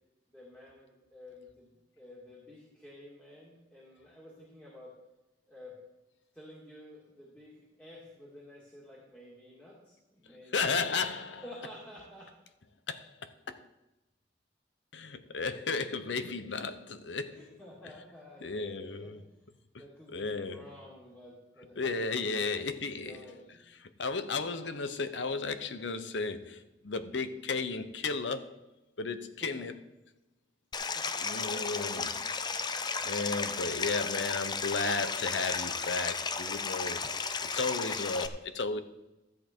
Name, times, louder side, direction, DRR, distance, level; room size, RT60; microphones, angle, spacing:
voice 1, 0.3-1.7 2.0-5.0 5.5-5.8 6.3-11.0 11.4-12.3 17.3-19.3 19.8-23.6 29.4-29.7 30.9-31.9 32.5-32.6, left 1 dB, 10° left, 2.3 m, -51 dB
voice 2, 10.5-11.4 12.9-13.6 14.9-17.5 18.4-19.2 20.1-20.6 21.8-23.2 24.0-28.5 29.0-29.7 31.2-32.1 33.0-37.0 37.5-38.8, left 4 dB, 90° left, 0.8 m, -34 dB
Stream, 30.7-38.3, left 5 dB, 25° left, 0.5 m, -34 dB
13.5 x 7.8 x 4.5 m
head